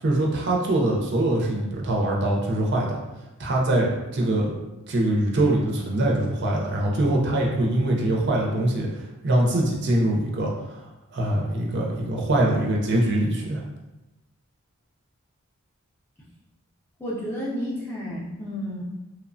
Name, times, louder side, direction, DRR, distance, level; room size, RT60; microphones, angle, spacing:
voice 1, 0.0-3.0 3.4-4.6 4.9-8.9 9.2-10.8 11.1-13.6, right 1 dB, 50° right, -2 dB, 0.5 m, -23 dB
voice 2, 17.0-18.8, equal, 10° left, -7 dB, 0.5 m, -31 dB
3.0 x 2.1 x 2.5 m, 1.0 s
head